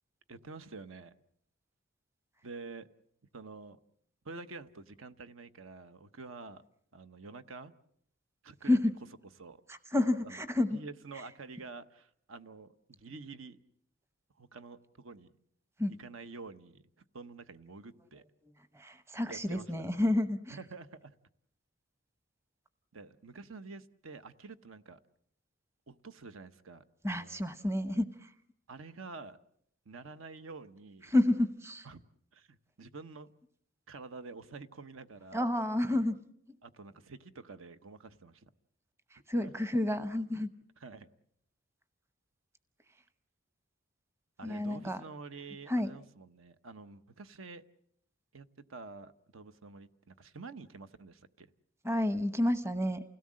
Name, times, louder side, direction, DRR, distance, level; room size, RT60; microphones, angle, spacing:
voice 1, 0.3-1.1 2.4-2.9 3.3-3.8 4.2-6.6 6.9-7.7 8.4-8.8 9.4-9.6 10.2-10.4 10.7-13.6 14.4-15.3 16.0-16.8 17.1-18.2 19.3-19.7 20.5-21.1 22.9-25.0 25.9-27.5 28.7-29.4 29.9-31.1 31.8-32.0 32.3-33.3 33.9-35.4 36.6-38.5 39.4-39.5 40.8-41.1 44.4-47.6 48.3-51.5, right 4 dB, 75° right, 0.9 m, -48 dB
voice 2, 9.7-10.8 15.8-15.9 18.7-20.6 27.0-28.3 31.1-31.9 35.3-36.2 36.5-36.6 39.1-40.5 44.4-45.0 45.7-45.9 51.8-53.0, left 1 dB, 10° right, 0.8 m, -30 dB
28.5 x 17.0 x 7.5 m
head